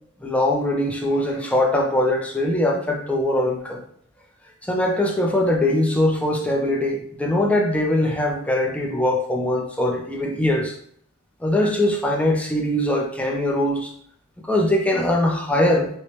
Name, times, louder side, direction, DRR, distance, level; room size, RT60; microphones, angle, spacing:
voice 1, 0.2-3.8 4.7-10.7 11.4-13.9 14.4-15.9, left 1 dB, 5° left, 0 dB, 0.4 m, -21 dB
4.5 x 2.1 x 2.9 m, 0.64 s
head